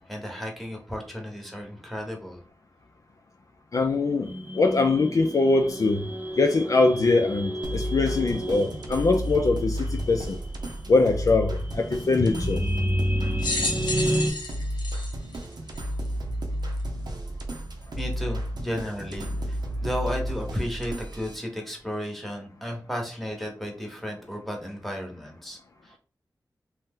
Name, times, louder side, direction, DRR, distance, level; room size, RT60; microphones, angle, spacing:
voice 1, 0.0-2.4 18.0-26.0, equal, ahead, 1.0 m, -34 dB
voice 2, 3.7-4.3 4.5-6.0 6.4-10.4 10.9-12.6, left 3 dB, 55° left, 0.3 m, -22 dB
sound 1, 4.2-14.3, equal, 30° right, 0.5 m, -31 dB
sound 2, 7.6-21.3, equal, 75° right, 0.6 m, -32 dB
sound 3, 13.4-16.1 16.8-16.9 18.0-18.1, left 2 dB, 90° left, 0.6 m, -31 dB
2.7 x 2.0 x 3.6 m
cardioid pair, 55°, 7 cm